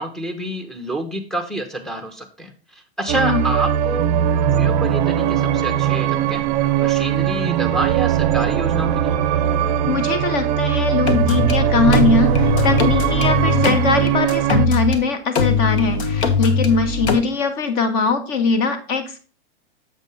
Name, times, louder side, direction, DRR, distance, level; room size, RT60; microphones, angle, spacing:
voice 1, 0.0-4.1 4.6-6.4 6.8-9.2, right 1 dB, ahead, 4 dB, 0.7 m, -28 dB
sound 1, 3.1-14.7, right 10 dB, 40° right, 0.5 m, -19 dB
voice 2, 9.8-19.2, left 5 dB, 40° left, 9 dB, 1.2 m, -21 dB
sound 2, 11.1-11.5 11.9-15.0 15.4-17.2, left 4 dB, 80° left, 1.3 m, -20 dB
7.4 x 5.3 x 3.9 m, 0.36 s
supercardioid pair, 150°, 33 cm